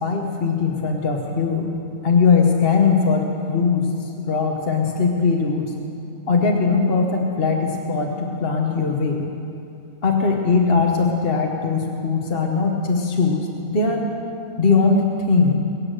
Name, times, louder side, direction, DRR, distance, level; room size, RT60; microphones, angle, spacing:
voice 1, 0.0-1.7 2.0-5.7 6.3-9.2 10.0-14.0 14.6-15.6, left 4 dB, 45° left, 1 dB, 1.3 m, -20 dB
22.5 x 8.5 x 6.6 m, 2.6 s
omnidirectional pair, 1.6 m